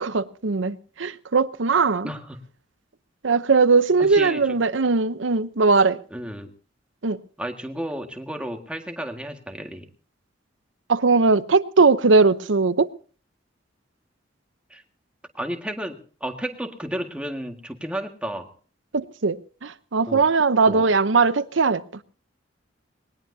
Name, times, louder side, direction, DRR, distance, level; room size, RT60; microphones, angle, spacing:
voice 1, 0.0-2.1 3.2-6.0 7.0-7.2 10.9-12.9 18.9-21.8, right 4 dB, 80° right, 0.8 m, -19 dB
voice 2, 2.0-2.4 4.0-4.7 6.1-6.5 7.4-9.9 14.7-14.8 15.3-18.5 20.1-20.2 20.7-20.9, right 1 dB, 5° right, 1.8 m, -32 dB
20.5 x 19.5 x 2.8 m
head